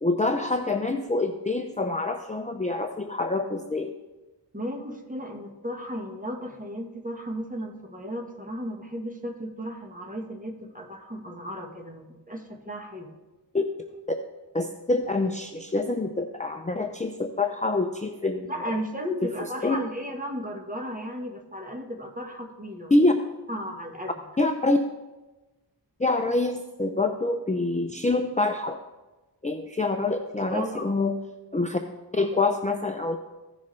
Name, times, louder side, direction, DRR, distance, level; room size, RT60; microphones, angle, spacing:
voice 1, 0.0-3.9 13.5-13.6 14.5-18.5 19.6-19.8 22.9-23.1 24.4-24.8 26.0-28.8 29.4-31.1 31.5-31.8 32.1-33.2, left 2 dB, 15° left, 4 dB, 0.5 m, -26 dB
voice 2, 4.5-13.1 18.4-22.9 23.5-24.1 30.5-31.0, equal, 20° right, 2 dB, 1.3 m, -35 dB
15.5 x 6.3 x 3.2 m, 1.1 s
wide cardioid pair, 45°, 43 cm